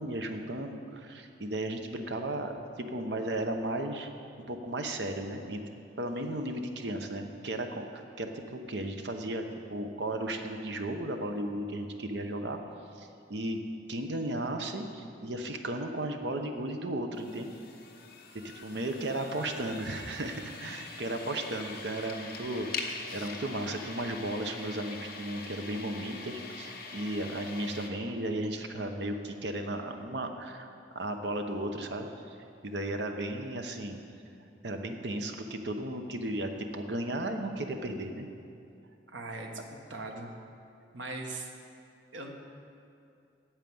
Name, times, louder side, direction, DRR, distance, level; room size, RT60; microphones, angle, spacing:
voice 1, 0.0-2.5 2.9-4.1 4.5-5.6 6.0-12.6 12.9-13.6 13.9-17.5 18.4-30.7 30.9-32.4 32.6-34.0 34.6-38.3, right 1 dB, 65° right, 5 dB, 0.9 m, -35 dB
sound 1, 17.1-27.9, left 4 dB, 55° left, 1.1 m, -43 dB
voice 2, 19.1-19.5 39.1-39.6 39.9-40.3 40.9-41.5 42.1-42.3, right 2 dB, 85° right, 2 dB, 1.3 m, -40 dB
9.0 x 8.3 x 7.7 m, 2.5 s
head